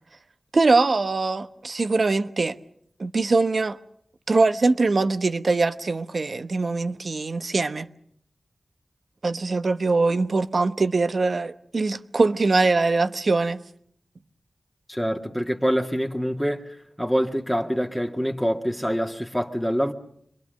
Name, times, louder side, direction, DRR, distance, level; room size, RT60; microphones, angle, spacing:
voice 1, 0.5-2.6 3.0-3.8 4.3-7.9 9.2-13.6, right 3 dB, 65° right, 1.0 m, -22 dB
voice 2, 14.9-16.6 17.0-19.9, equal, ahead, 1.9 m, -25 dB
27.0 x 22.0 x 6.6 m
cardioid pair, 45°, 0 cm